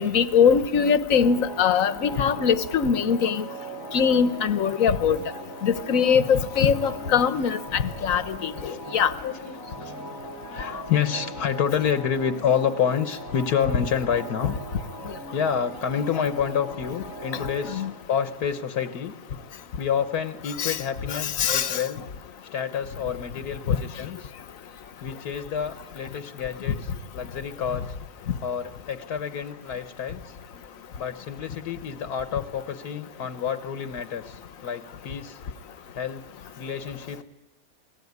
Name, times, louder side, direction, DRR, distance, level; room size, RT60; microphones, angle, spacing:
voice 1, 0.0-3.5 3.9-5.2 5.6-9.1 17.7-17.9 20.6-20.8 21.1-21.8 23.7-23.8, left 7 dB, 60° left, 1.4 m, -22 dB
sound 1, 1.2-17.9, right 2 dB, 60° right, 4.1 m, -40 dB
voice 2, 1.7-2.3 7.3-7.6 8.0-10.2 10.4-14.6 15.3-19.1 19.8-22.0 22.5-24.3 25.0-27.9 28.4-30.3 31.0-35.4 35.9-36.2 36.6-37.2, left 7 dB, 80° left, 1.6 m, -29 dB
28.5 x 18.5 x 9.5 m
omnidirectional pair, 1.6 m